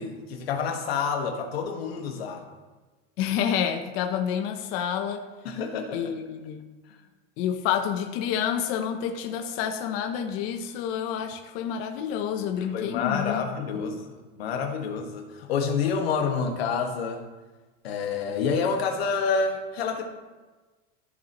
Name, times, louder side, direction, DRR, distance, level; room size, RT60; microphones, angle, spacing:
voice 1, 0.0-2.4 5.4-6.1 6.9-7.0 12.6-14.1 14.4-17.2 17.8-20.0, left 5 dB, 90° left, 3 dB, 1.6 m, -28 dB
voice 2, 3.2-5.2 5.9-6.7 7.4-13.5 13.7-13.9, left 8 dB, 45° left, 4 dB, 0.8 m, -29 dB
14.5 x 6.4 x 3.0 m, 1.3 s
supercardioid pair, 150°, 30 cm